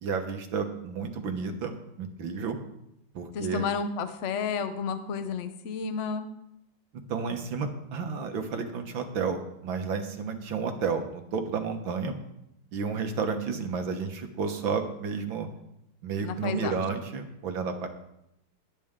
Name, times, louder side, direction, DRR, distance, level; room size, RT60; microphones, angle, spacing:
voice 1, 0.0-2.6 3.1-3.6 7.1-12.1 12.7-15.5 16.0-17.9, right 5 dB, 70° right, 6 dB, 2.0 m, -31 dB
voice 2, 3.3-6.3 16.2-16.8, left 6 dB, 50° left, 9 dB, 1.0 m, -31 dB
18.0 x 10.0 x 3.7 m, 0.81 s
omnidirectional pair, 2.3 m